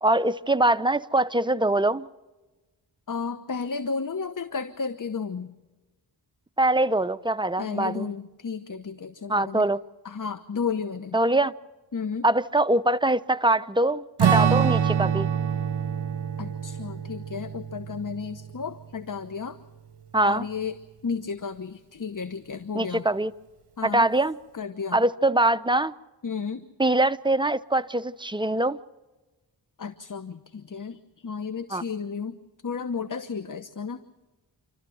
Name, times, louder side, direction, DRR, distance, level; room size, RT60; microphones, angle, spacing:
voice 1, 0.0-2.1 6.6-8.1 9.3-9.8 11.1-11.5 12.2-15.3 20.1-20.4 22.7-23.3 23.8-24.4 24.9-25.9 26.8-28.8 31.7-31.8, right 2 dB, 10° right, 0.8 m, -23 dB
voice 2, 3.1-5.5 7.6-9.7 10.0-11.2 11.9-12.3 16.4-19.6 20.2-20.8 21.0-23.1 23.8-24.1 24.5-25.1 26.2-26.7 29.8-32.3 32.6-34.0, left 5 dB, 45° left, 1.1 m, -33 dB
Strum, 14.2-18.9, right 8 dB, 60° right, 1.2 m, -25 dB
28.0 x 13.5 x 7.8 m
cardioid pair, 45°, 45 cm